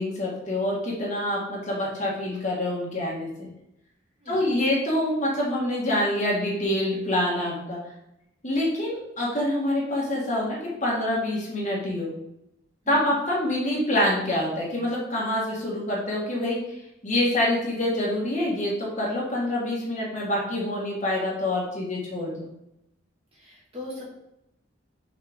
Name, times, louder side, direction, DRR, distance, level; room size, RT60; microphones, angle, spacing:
voice 1, 0.0-3.5 4.3-7.8 8.4-12.1 12.9-16.6 17.0-22.5, left 1 dB, 40° left, -4 dB, 1.6 m, -26 dB
voice 2, 4.2-4.6 12.8-13.2 23.3-24.1, left 1 dB, 30° right, -6 dB, 2.1 m, -40 dB
6.2 x 4.2 x 3.6 m, 0.83 s
head